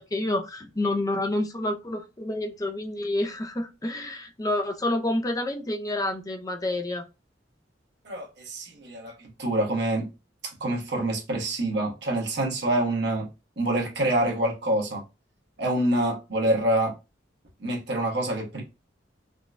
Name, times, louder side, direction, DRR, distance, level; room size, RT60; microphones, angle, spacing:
voice 1, 0.0-7.0, left 1 dB, 20° left, 0.5 m, -28 dB
voice 2, 8.0-9.1 9.4-10.1 10.6-13.3 13.6-15.0 15.6-16.9 17.6-18.6, right 1 dB, 65° right, 1.2 m, -26 dB
3.7 x 2.3 x 2.4 m
head